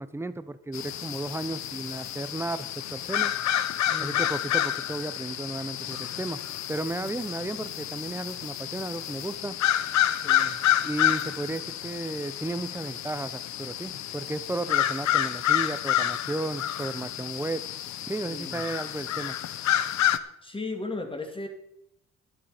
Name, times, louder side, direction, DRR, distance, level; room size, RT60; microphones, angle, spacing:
voice 1, 0.0-3.3 4.0-6.4 6.7-9.6 10.8-17.6 18.1-19.4, right 2 dB, 10° right, 13 dB, 0.8 m, -34 dB
sound 1, 0.7-20.2, left 11 dB, 65° left, 0.8 m, -29 dB
voice 2, 3.9-4.2 10.2-10.6 18.2-18.7 20.1-21.5, left 2 dB, 15° left, 5 dB, 2.2 m, -37 dB
11.5 x 10.5 x 5.1 m, 0.77 s
cardioid pair, 90°, 30 cm